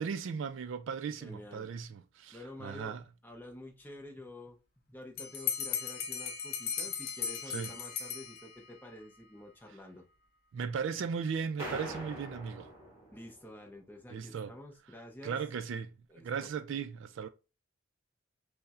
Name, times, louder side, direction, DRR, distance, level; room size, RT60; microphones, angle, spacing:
voice 1, 0.0-3.0 7.5-7.7 10.5-12.7 14.1-14.5 15.2-17.3, right 6 dB, 65° right, 0.3 m, -37 dB
voice 2, 1.2-1.7 2.3-4.6 4.9-10.1 13.1-15.4 16.1-16.5, left 1 dB, 10° left, 0.7 m, -49 dB
Bell, 5.2-8.8, left 7 dB, 50° left, 0.5 m, -37 dB
sound 1, 11.6-13.6, right 1 dB, 15° right, 1.9 m, -43 dB
5.4 x 2.1 x 2.4 m
head